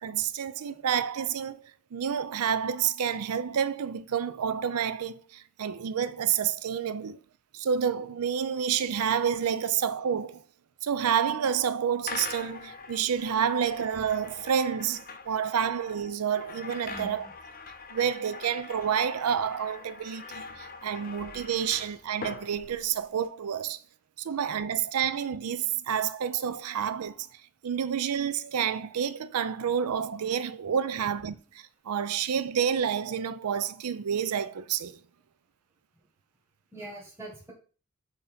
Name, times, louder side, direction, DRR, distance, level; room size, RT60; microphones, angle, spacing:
voice 1, 0.0-7.2 7.5-10.4 10.8-17.3 17.9-23.8 24.2-27.3 27.6-35.0, right 8 dB, 85° right, 0.4 m, -29 dB
sound 1, 12.0-23.3, left 4 dB, 40° left, 0.7 m, -43 dB
voice 2, 16.9-17.3 36.7-37.5, right 1 dB, 10° right, 1.4 m, -43 dB
7.0 x 2.8 x 5.0 m
head